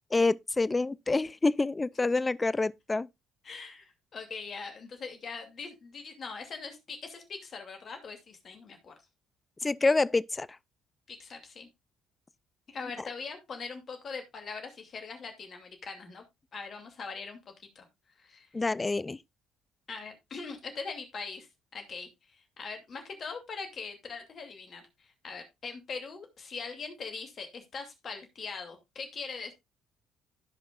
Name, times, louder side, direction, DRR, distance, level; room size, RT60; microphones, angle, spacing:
voice 1, 0.1-3.1 9.6-10.5 18.5-19.2, left 3 dB, 25° left, 0.4 m, -27 dB
voice 2, 3.4-8.9 11.1-11.7 12.7-16.2 16.5-17.9 18.2-18.5 19.9-21.5 21.7-29.5, left 4 dB, 50° left, 2.6 m, -41 dB
15.5 x 5.3 x 2.4 m
hypercardioid pair, 55°, 0 cm